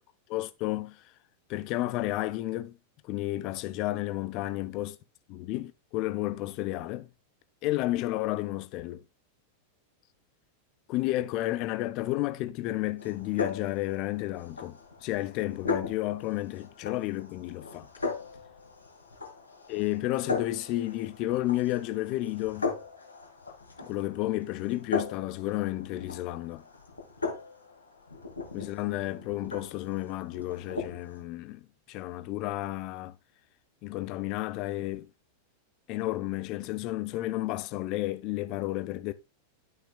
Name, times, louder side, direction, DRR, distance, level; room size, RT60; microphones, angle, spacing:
voice 1, 0.3-1.0 1.5-2.8 3.1-4.9 5.3-7.1 7.6-9.0 10.9-17.9 19.7-22.7 23.8-26.6 28.5-33.2 33.8-35.1 35.9-39.1, left 16 dB, 40° left, 0.6 m, -32 dB
sound 1, 13.0-31.2, left 4 dB, 75° left, 2.0 m, -38 dB
12.0 x 5.8 x 2.2 m
figure-of-eight pair, 90°, 0 cm